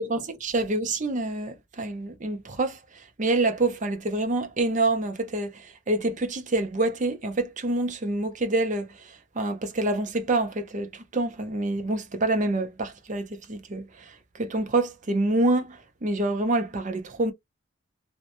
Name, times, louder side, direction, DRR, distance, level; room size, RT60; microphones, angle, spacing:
voice 1, 0.0-17.3, right 2 dB, 40° right, 0.6 m, -27 dB
2.8 x 2.1 x 2.6 m
head